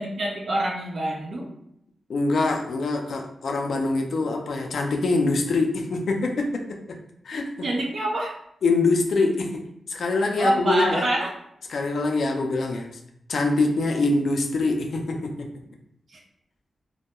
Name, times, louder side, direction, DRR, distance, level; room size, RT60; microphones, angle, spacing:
voice 1, 0.0-1.5 7.6-8.4 10.3-11.3 16.1-16.2, right 1 dB, 65° right, -1 dB, 0.6 m, -26 dB
voice 2, 2.1-7.0 7.2-7.5 8.6-11.1 11.7-12.9 13.3-15.5, left 3 dB, 75° left, 2 dB, 0.5 m, -24 dB
2.2 x 2.2 x 2.9 m, 0.75 s
cardioid pair, 75°, 0 cm